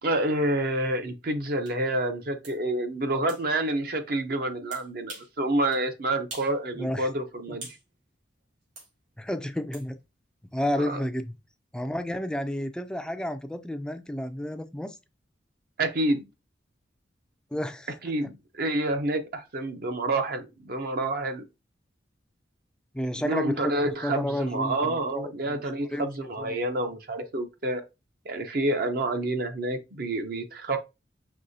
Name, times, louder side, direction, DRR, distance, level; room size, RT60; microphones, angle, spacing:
voice 1, 0.0-7.7 10.8-11.0 15.8-16.2 18.0-21.4 23.2-27.8 28.2-30.8, right 1 dB, 55° right, 0.7 m, -28 dB
sound 1, 1.6-1.8 2.4-2.6 3.3-3.4 4.7-5.3 5.7-5.8 6.3-6.6 6.9-7.8 8.8-8.9 9.7-9.9, right 2 dB, 90° right, 2.7 m, -43 dB
voice 2, 6.7-7.1 9.2-10.0 10.5-11.4 11.7-15.0 17.5-17.9 22.9-25.6 25.9-26.6, equal, 5° left, 0.3 m, -31 dB
5.4 x 3.2 x 2.6 m
head